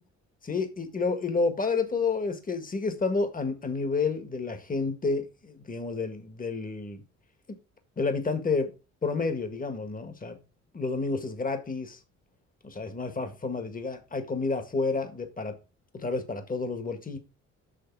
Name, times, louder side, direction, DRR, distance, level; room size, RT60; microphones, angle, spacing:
voice 1, 0.4-7.0 7.5-7.6 8.0-8.7 9.0-10.4 10.7-12.0 12.6-15.6 15.9-17.2, left 4 dB, 30° left, 1.8 m, -30 dB
6.7 x 6.5 x 4.7 m
cardioid pair, 90°, 30 cm